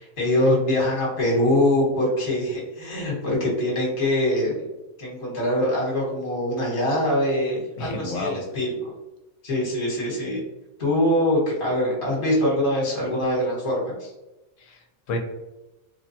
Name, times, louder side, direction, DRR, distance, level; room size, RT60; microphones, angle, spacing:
voice 1, 0.0-4.6 5.0-8.9 9.4-10.4 10.8-14.1, left 1 dB, 45° left, -4 dB, 1.3 m, -23 dB
voice 2, 7.8-8.4 14.6-15.2, left 2 dB, 80° left, 2 dB, 1.0 m, -31 dB
3.2 x 2.2 x 2.7 m, 1.0 s
omnidirectional pair, 1.3 m